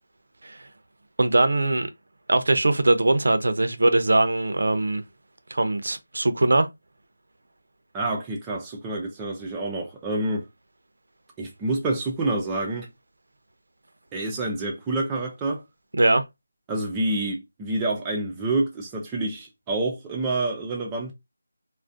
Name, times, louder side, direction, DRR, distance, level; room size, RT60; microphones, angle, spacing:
voice 1, 1.2-1.9 2.3-5.0 5.5-6.7 16.0-16.2, right 2 dB, 70° right, 0.4 m, -21 dB
voice 2, 7.9-10.4 11.4-12.9 14.1-15.6 16.7-21.1, right 2 dB, 10° right, 0.3 m, -28 dB
2.4 x 2.1 x 2.5 m
figure-of-eight pair, 175°, 0 cm